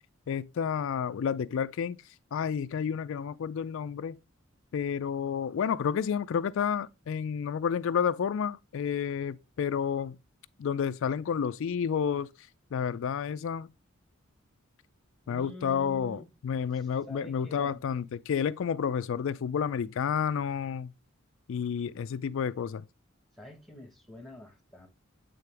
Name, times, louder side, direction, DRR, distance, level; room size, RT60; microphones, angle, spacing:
voice 1, 0.3-2.0 2.3-4.2 4.7-10.2 10.6-12.3 12.7-13.7 15.3-20.9 21.5-22.8, left 7 dB, 65° left, 0.3 m, -30 dB
voice 2, 15.2-16.3 16.7-17.8 23.3-24.9, left 1 dB, ahead, 1.2 m, -47 dB
8.3 x 3.8 x 3.3 m
head